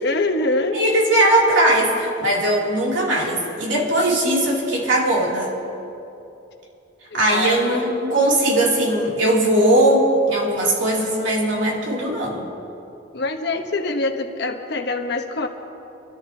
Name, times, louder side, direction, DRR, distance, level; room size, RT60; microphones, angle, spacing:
voice 1, 0.0-0.8 7.1-7.9 13.1-15.5, left 2 dB, 55° left, 4 dB, 1.1 m, -24 dB
voice 2, 0.7-5.5 7.1-12.5, right 1 dB, 75° right, -3 dB, 2.9 m, -19 dB
25.0 x 13.5 x 2.8 m, 2.8 s
head